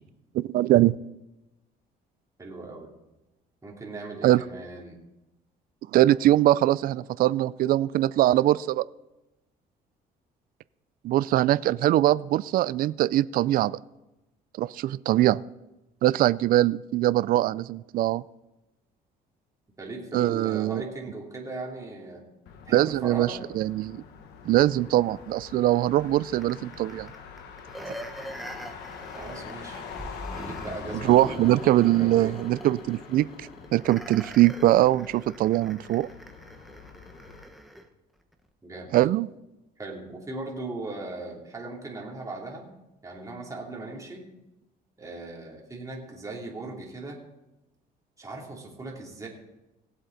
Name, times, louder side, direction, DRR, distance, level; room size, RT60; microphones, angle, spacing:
voice 1, 0.3-1.0 4.2-4.4 5.9-8.8 11.0-13.7 14.6-15.4 16.0-18.2 20.1-20.8 22.7-24.0 24.5-27.1 31.0-36.1 38.9-39.3, right 14 dB, 60° right, 18 dB, 0.4 m, -22 dB
voice 2, 2.4-2.9 3.6-5.0 19.8-22.3 22.7-23.4 29.1-29.8 30.3-31.6 31.9-32.4 38.6-38.9 39.8-42.7 43.0-44.3 45.0-47.2 48.2-49.3, right 2 dB, 20° right, -2 dB, 3.0 m, -38 dB
Motor vehicle (road), 22.5-37.4, left 6 dB, 80° left, 1.3 m, -45 dB
sound 1, 26.4-37.9 38.3-38.4, equal, ahead, 1.2 m, -43 dB
18.0 x 7.8 x 4.0 m, 0.97 s
cardioid pair, 110°, 17 cm